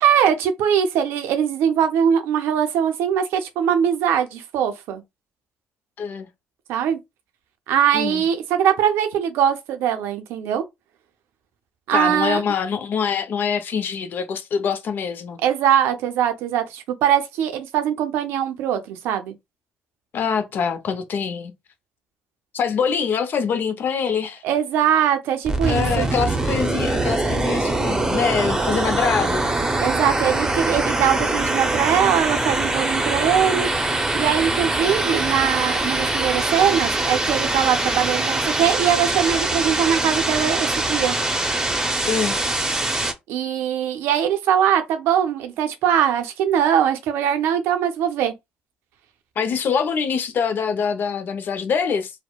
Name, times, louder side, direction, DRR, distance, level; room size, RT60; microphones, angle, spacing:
voice 1, 0.0-5.0 6.7-7.0 7.7-10.6 11.9-12.4 15.4-19.3 24.4-26.1 29.8-33.7 34.1-41.1 43.3-48.3, right 9 dB, 70° right, 0.5 m, -21 dB
voice 2, 6.0-6.3 7.9-8.2 11.9-15.4 20.1-21.5 22.5-24.4 25.7-29.4 31.2-31.3 42.1-42.4 49.4-52.1, left 6 dB, 55° left, 0.5 m, -24 dB
sound 1, 25.4-43.1, right 2 dB, 15° right, 0.6 m, -23 dB
2.8 x 2.0 x 2.2 m
hypercardioid pair, 50°, 4 cm